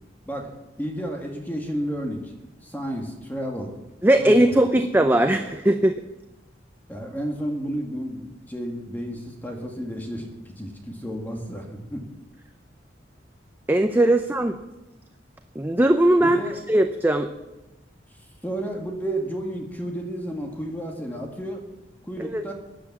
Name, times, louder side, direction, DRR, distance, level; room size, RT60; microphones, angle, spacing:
voice 1, 0.8-2.3 2.6-3.8 4.1-4.7 6.9-12.0 16.2-16.6 18.4-21.6 22.1-22.5, right 1 dB, 10° left, 1 dB, 1.9 m, -32 dB
voice 2, 4.0-5.9 13.7-14.6 15.6-16.4 16.7-17.3 22.2-22.4, right 1 dB, 10° right, 6 dB, 0.7 m, -19 dB
16.0 x 10.5 x 7.2 m, 1.0 s
head